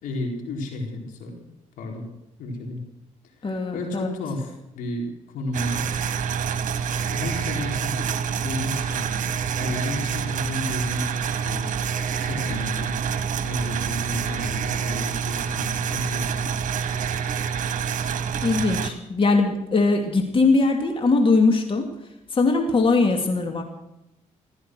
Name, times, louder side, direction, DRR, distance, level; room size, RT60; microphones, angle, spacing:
voice 1, 0.0-1.5 1.8-2.1 2.4-2.8 3.2-5.9 7.1-9.3 9.5-11.7 12.2-13.1 13.4-16.5, left 2 dB, 85° left, 1 dB, 4.2 m, -33 dB
voice 2, 3.4-4.1 18.4-21.9 22.3-23.6, left 3 dB, 40° left, 3 dB, 2.6 m, -21 dB
sound 1, 5.5-18.9, right 7 dB, 70° right, 1.5 m, -27 dB
15.5 x 14.0 x 6.3 m, 0.88 s
cardioid pair, 80°, 14 cm